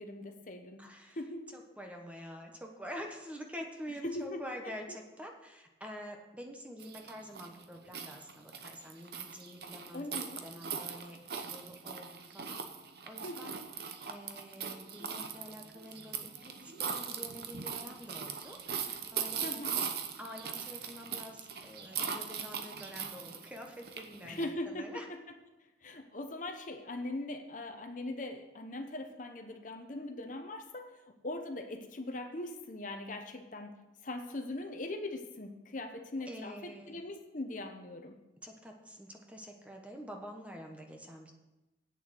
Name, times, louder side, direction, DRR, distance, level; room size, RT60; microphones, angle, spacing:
voice 1, 0.0-0.8 1.2-1.6 4.0-4.4 4.9-5.0 9.9-10.4 13.2-13.6 19.4-19.8 24.2-24.9 25.8-30.9 31.2-33.7 34.0-36.5 36.9-38.2, left 2 dB, 45° left, 5 dB, 0.9 m, -40 dB
voice 2, 0.8-1.2 1.5-12.6 13.1-19.7 20.2-25.1 36.3-37.0 38.4-41.3, equal, 5° right, 2 dB, 1.2 m, -47 dB
sound 1, 6.8-24.4, right 7 dB, 60° right, 0.9 m, -40 dB
8.6 x 7.0 x 7.9 m, 1.0 s
head